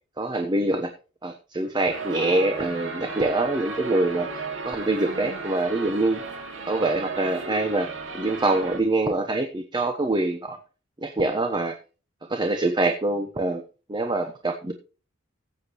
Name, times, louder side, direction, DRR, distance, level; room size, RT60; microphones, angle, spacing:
voice 1, 0.2-0.9 1.2-6.2 6.7-7.9 8.1-10.6 11.0-11.8 12.3-13.6 13.9-14.7, right 2 dB, 20° right, 6 dB, 1.0 m, -25 dB
sound 1, 1.9-8.8, right 4 dB, 70° right, 2.7 m, -35 dB
15.5 x 8.2 x 3.1 m, 0.34 s
head